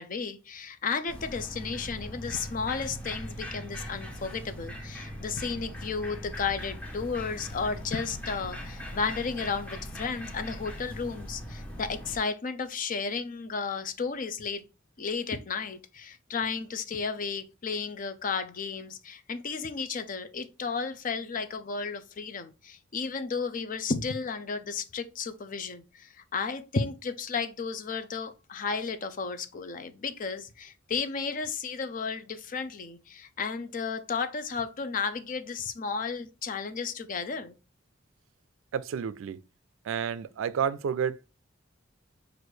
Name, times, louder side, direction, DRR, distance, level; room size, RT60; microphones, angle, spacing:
voice 1, 0.0-14.7 15.0-37.6, left 5 dB, 45° left, 0.5 m, -33 dB
sound 1, 1.1-12.2, equal, 5° left, 0.8 m, -40 dB
voice 2, 38.7-39.4 39.8-41.3, right 7 dB, 85° right, 0.3 m, -30 dB
6.2 x 2.5 x 3.1 m
head